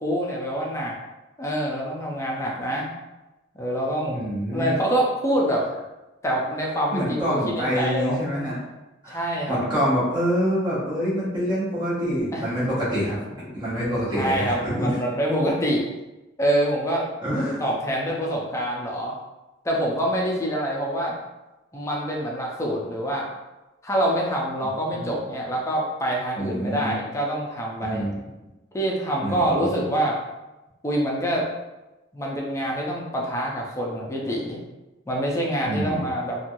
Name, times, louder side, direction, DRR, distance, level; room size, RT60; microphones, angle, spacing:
voice 1, 0.0-1.0 1.4-2.9 3.5-4.2 4.5-5.7 6.2-8.2 9.1-9.6 12.3-12.4 14.2-15.9 16.4-17.1 17.4-19.2 19.6-21.1 21.7-23.3 23.8-28.1 28.7-30.2 30.8-31.5 32.1-34.6 35.1-36.4, equal, 15° left, -2 dB, 0.4 m, -25 dB
voice 2, 4.1-4.8 6.9-8.6 9.0-15.0 17.2-17.6 24.9-25.1 26.4-27.0 27.8-28.2 29.2-29.7 35.6-36.1, equal, 25° right, -9 dB, 0.7 m, -26 dB
3.0 x 2.3 x 2.6 m, 1.0 s
head